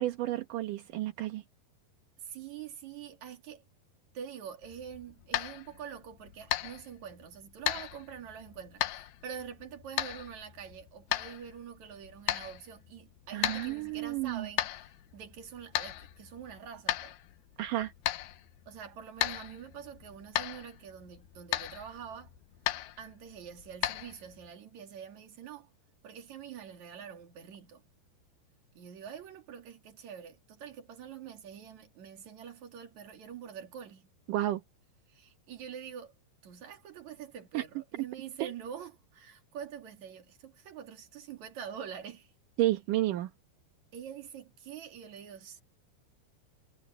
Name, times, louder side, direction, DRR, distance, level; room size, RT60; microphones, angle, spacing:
voice 1, 0.0-1.4 13.3-14.5 17.6-17.9 34.3-34.6 37.5-37.6 38.4-38.5 42.6-43.3, right 15 dB, 65° right, 2.3 m, -31 dB
voice 2, 2.2-3.6 4.1-17.2 18.7-22.3 23.0-25.7 26.0-27.8 28.7-34.1 35.1-36.1 36.4-42.3 43.9-45.6, right 8 dB, 50° right, 3.2 m, -45 dB
sound 1, 4.6-24.5, left 14 dB, 75° left, 2.7 m, -37 dB
omnidirectional pair, 5.0 m